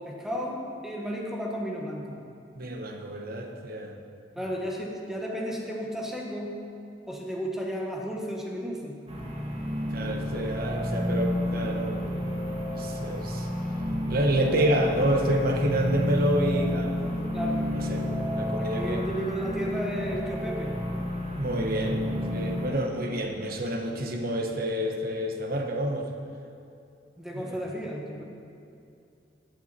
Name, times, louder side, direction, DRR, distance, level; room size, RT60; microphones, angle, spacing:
voice 1, 0.0-2.2 4.4-6.6 7.1-9.0 17.3-17.7 18.6-20.7 27.2-28.2, equal, ahead, -1 dB, 1.5 m, -33 dB
voice 2, 2.5-3.9 9.9-12.3 12.7-13.5 14.1-17.4 17.7-19.0 21.4-26.1 27.3-27.6, right 1 dB, 55° right, 2 dB, 1.2 m, -28 dB
sound 1, 9.1-22.7, left 1 dB, 35° right, 1.7 m, -30 dB
15.0 x 8.3 x 4.4 m, 2.6 s
head